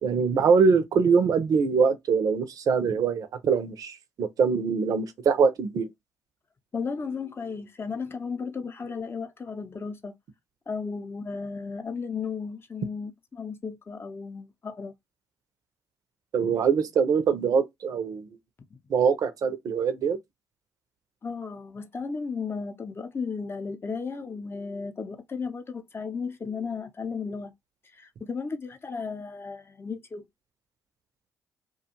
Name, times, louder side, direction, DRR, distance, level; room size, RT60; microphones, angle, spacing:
voice 1, 0.0-5.9 16.3-18.3 18.9-20.2, right 5 dB, 55° right, 0.6 m, -23 dB
voice 2, 6.7-10.1 10.7-14.9 18.7-18.8 21.2-27.5 27.9-30.2, left 5 dB, 30° left, 0.6 m, -34 dB
2.4 x 2.3 x 2.8 m
hypercardioid pair, 45°, 7 cm